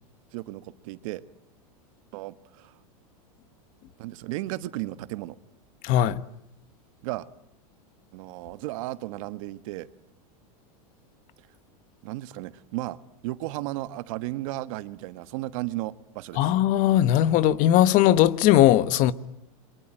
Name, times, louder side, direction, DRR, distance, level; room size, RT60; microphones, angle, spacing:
voice 1, 0.3-1.2 2.1-2.8 4.0-5.4 7.0-7.3 8.1-9.9 12.0-13.0 13.2-16.5, right 17 dB, 60° right, 1.4 m, -34 dB
voice 2, 5.8-6.2 16.4-19.1, left 12 dB, 45° left, 1.2 m, -19 dB
28.0 x 23.5 x 8.9 m
supercardioid pair, 135°, 19 cm